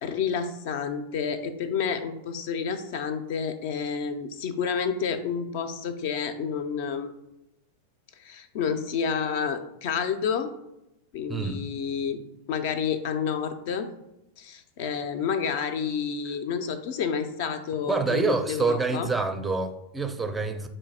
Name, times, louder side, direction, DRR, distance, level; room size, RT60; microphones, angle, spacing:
voice 1, 0.0-7.1 8.2-10.5 11.1-12.2 12.5-13.9 14.4-19.1, left 6 dB, 50° left, 8 dB, 0.4 m, -29 dB
voice 2, 11.3-11.6 17.8-20.7, right 4 dB, 10° right, 7 dB, 0.4 m, -27 dB
4.8 x 2.5 x 4.1 m, 0.86 s
figure-of-eight pair, 90°, 0 cm